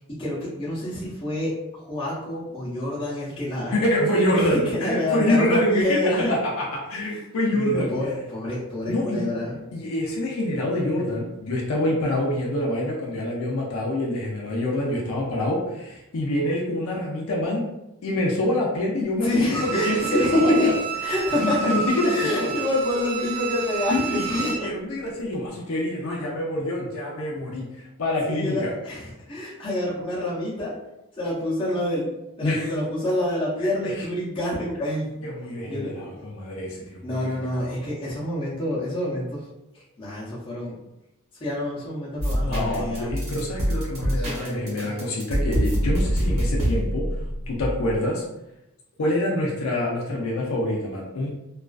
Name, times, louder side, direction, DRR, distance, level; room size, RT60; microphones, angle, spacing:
voice 1, 0.1-3.7 4.3-6.3 7.1-7.2 7.5-9.5 19.2-20.7 21.0-21.7 22.0-24.7 28.1-30.7 31.2-32.1 32.4-35.2 35.7-36.1 37.0-39.4 40.0-40.8 41.4-43.2 44.0-44.9, left 1 dB, 25° left, -8 dB, 0.6 m, -27 dB
voice 2, 3.7-7.9 8.9-9.2 9.7-17.6 18.0-20.7 21.3-22.6 23.9-28.7 32.4-32.7 33.6-34.1 35.2-37.3 37.5-37.8 42.4-47.1 47.5-48.2 49.0-51.3, left 1 dB, 70° left, -3 dB, 0.4 m, -26 dB
Bowed string instrument, 19.5-24.7 25.1-25.2, right 6 dB, 50° right, 0.5 m, -30 dB
sound 1, 42.2-48.0, equal, 75° right, 1.1 m, -25 dB
2.3 x 2.3 x 2.3 m, 0.91 s
head